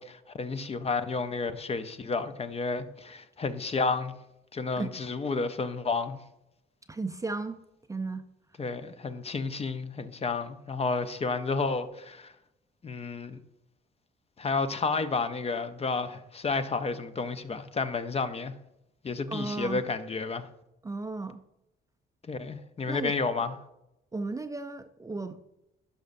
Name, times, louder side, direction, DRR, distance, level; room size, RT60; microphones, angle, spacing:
voice 1, 0.0-4.1 4.5-6.2 8.6-12.3 12.8-13.4 14.4-18.5 19.0-20.5 22.3-23.5, left 4 dB, 30° left, 0.6 m, -31 dB
voice 2, 6.9-7.6 7.9-8.2 19.3-19.8 20.8-21.4 22.9-23.2 24.1-25.4, right 3 dB, 15° right, 0.4 m, -34 dB
11.5 x 5.4 x 2.6 m
cardioid pair, 90°, 20 cm